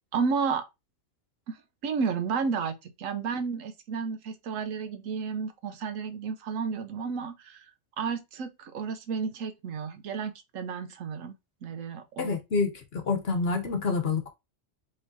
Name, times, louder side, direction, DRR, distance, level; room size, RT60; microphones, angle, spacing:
voice 1, 0.1-0.6 1.5-1.6 1.8-7.6 8.0-11.4 11.6-12.3, right 5 dB, 80° right, 1.1 m, -32 dB
voice 2, 12.2-14.3, left 4 dB, 55° left, 1.0 m, -28 dB
4.9 x 3.2 x 2.6 m
omnidirectional pair, 1.3 m